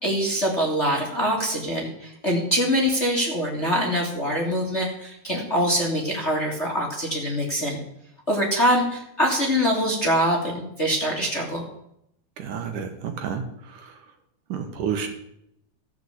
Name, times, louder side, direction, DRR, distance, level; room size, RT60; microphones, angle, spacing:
voice 1, 0.0-7.8 8.3-11.6, equal, 25° left, -1 dB, 2.0 m, -24 dB
voice 2, 12.4-14.0 14.5-15.1, right 7 dB, 65° right, 5 dB, 2.6 m, -30 dB
15.0 x 6.9 x 8.1 m, 0.76 s
omnidirectional pair, 4.2 m